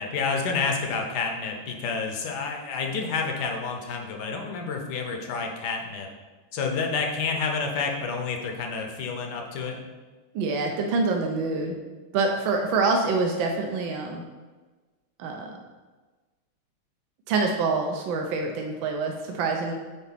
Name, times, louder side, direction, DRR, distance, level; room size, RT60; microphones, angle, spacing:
voice 1, 0.0-6.1 6.5-9.8, left 4 dB, 60° left, 3 dB, 1.3 m, -29 dB
voice 2, 10.3-11.8 12.1-14.2 15.2-15.5 17.3-19.7, right 3 dB, 80° right, 2 dB, 1.4 m, -26 dB
7.1 x 4.1 x 4.1 m, 1.3 s
omnidirectional pair, 2.2 m